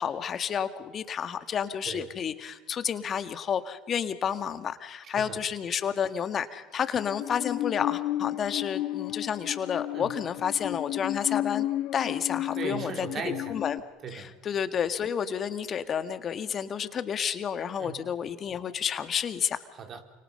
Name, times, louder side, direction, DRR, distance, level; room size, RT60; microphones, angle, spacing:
voice 1, 0.0-11.7 11.9-13.1 13.5-13.8 14.1-19.6, left 8 dB, 40° left, 11 dB, 1.9 m, -30 dB
Musical instrument, 6.9-13.8, left 14 dB, 60° left, 1.0 m, -33 dB
voice 2, 12.6-13.6 14.0-14.4 17.8-18.0 19.7-20.0, right 6 dB, 45° right, 5 dB, 3.9 m, -38 dB
29.0 x 26.5 x 5.6 m, 1.2 s
hypercardioid pair, 80°, 0 cm